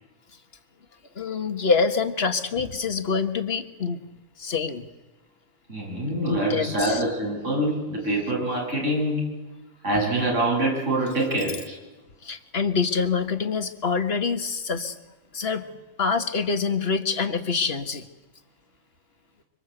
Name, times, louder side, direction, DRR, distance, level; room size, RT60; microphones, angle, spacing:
voice 1, 1.2-4.0 4.4-4.8 6.3-7.0 12.2-15.0 15.3-15.6 16.0-18.0, left 5 dB, 50° left, 8 dB, 1.8 m, -25 dB
voice 2, 5.7-9.3 9.8-11.8, right 1 dB, 70° right, -2 dB, 7.5 m, -25 dB
25.5 x 25.0 x 8.1 m, 1.1 s
omnidirectional pair, 1.3 m